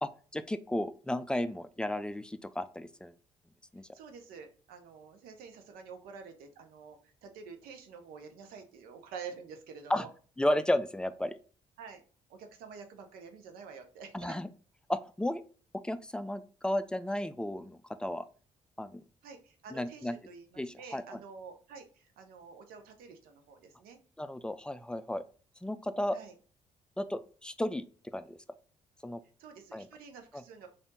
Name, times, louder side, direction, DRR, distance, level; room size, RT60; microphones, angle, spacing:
voice 1, 0.0-3.1 3.7-3.9 9.9-10.1 10.4-11.4 14.1-14.5 14.9-15.4 15.8-18.2 18.8-19.0 19.7-20.2 20.6-21.2 24.2-25.2 25.6-26.2 27.0-27.8 28.1-28.4 29.0-29.2 29.7-29.9 30.3-30.4, left 1 dB, 5° left, 11 dB, 0.4 m, -33 dB
voice 2, 3.9-10.1 11.8-12.0 12.3-14.3 19.2-24.0 26.1-26.3 29.4-30.7, right 5 dB, 75° right, 6 dB, 0.8 m, -48 dB
3.4 x 2.6 x 4.0 m, 0.39 s
hypercardioid pair, 55°, 15 cm